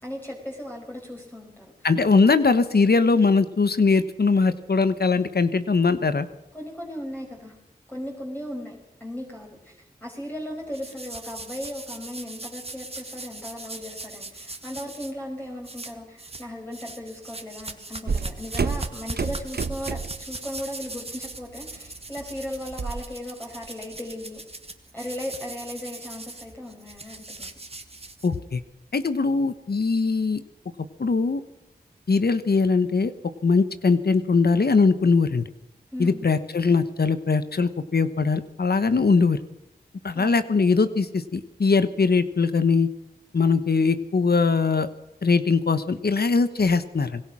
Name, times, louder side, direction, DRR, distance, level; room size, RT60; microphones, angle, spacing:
voice 1, 0.0-1.7 6.5-7.5 7.9-8.7 9.0-24.4 24.9-27.5 35.9-36.2 40.1-40.5, left 1 dB, 10° left, -2 dB, 5.1 m, -37 dB
voice 2, 1.8-6.3 28.2-28.6 28.9-30.4 31.0-31.4 32.1-33.1 33.4-35.4 36.0-39.4 40.0-42.9 43.3-44.9 45.2-47.2, left 4 dB, 70° left, 12 dB, 1.2 m, -21 dB
sound 1, 10.7-15.1 15.6-16.5 16.7-28.6, right 2 dB, 35° right, 2.0 m, -40 dB
sound 2, 18.1-20.3 20.7-21.0 21.3-23.0, right 5 dB, 75° right, 1.0 m, -30 dB
26.0 x 18.5 x 6.2 m, 0.88 s
cardioid pair, 45°, 17 cm